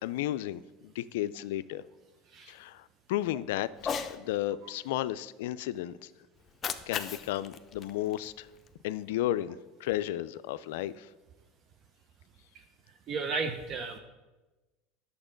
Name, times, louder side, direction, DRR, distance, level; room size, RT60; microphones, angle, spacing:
voice 1, 0.0-1.8 2.5-6.1 6.9-8.5 8.8-11.1, left 13 dB, 80° left, 15 dB, 0.3 m, -33 dB
Cat, 3.7-4.2 6.4-8.7, left 6 dB, 35° left, 0.6 m, -37 dB
voice 2, 13.1-14.0, right 4 dB, 45° right, 7 dB, 0.7 m, -33 dB
8.8 x 6.8 x 5.1 m, 1.1 s
supercardioid pair, 95°, 0 cm